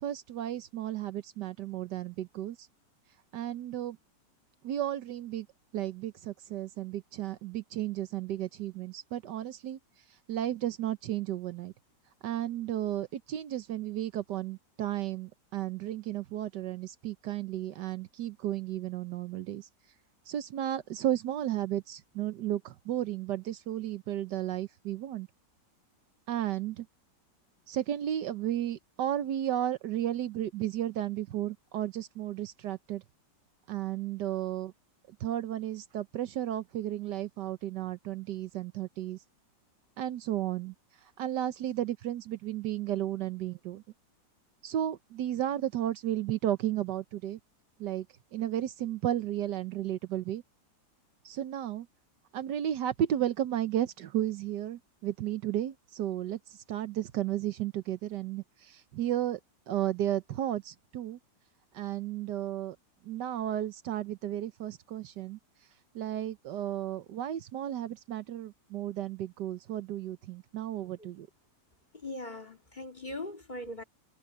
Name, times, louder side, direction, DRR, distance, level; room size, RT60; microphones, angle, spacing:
voice 1, 0.0-2.7 3.3-4.0 4.6-5.5 5.7-9.8 10.3-11.7 12.2-19.7 20.3-25.3 26.3-26.9 27.7-33.0 33.7-34.7 35.1-39.2 40.0-40.7 41.2-43.8 44.6-47.4 47.8-48.1 48.3-50.4 51.2-51.9 52.3-59.4 59.7-61.2 61.7-62.8 63.0-65.4 65.9-71.3, right 12 dB, 75° right, 1.4 m, -33 dB
voice 2, 71.9-73.8, left 1 dB, 25° left, 2.5 m, -40 dB
omnidirectional pair, 1.9 m